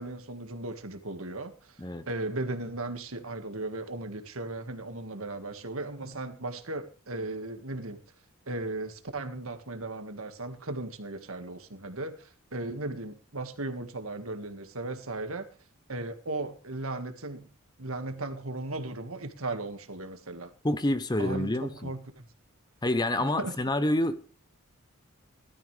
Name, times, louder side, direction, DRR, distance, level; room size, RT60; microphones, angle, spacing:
voice 1, 0.0-8.0 8.5-15.5 15.9-17.5 17.8-20.5 21.2-22.3 23.4-23.5, right 2 dB, 75° right, 1.8 m, -36 dB
voice 2, 20.6-21.9 22.8-24.2, left 1 dB, 20° left, 0.8 m, -27 dB
19.0 x 13.0 x 3.3 m
head